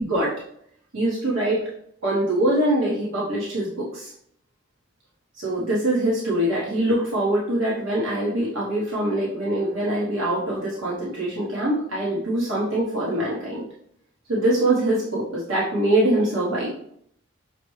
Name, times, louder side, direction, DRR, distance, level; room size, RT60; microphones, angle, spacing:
voice 1, 0.9-1.6 2.0-4.1 5.3-13.7 14.3-16.7, right 1 dB, 80° right, -7 dB, 1.0 m, -23 dB
5.9 x 2.1 x 3.1 m, 0.68 s
head